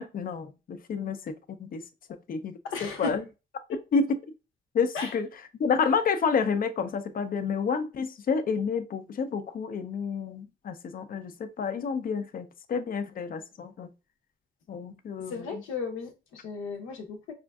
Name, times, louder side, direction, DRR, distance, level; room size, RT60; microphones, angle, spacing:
voice 1, 0.0-1.8 2.3-3.2 3.9-4.1 4.7-13.9 14.7-15.6, left 5 dB, 45° left, 0.5 m, -29 dB
voice 2, 2.7-3.2 3.7-3.8 4.9-5.1 15.3-17.3, left 4 dB, 85° left, 0.8 m, -35 dB
5.0 x 2.5 x 2.3 m
cardioid pair, 90°, 20 cm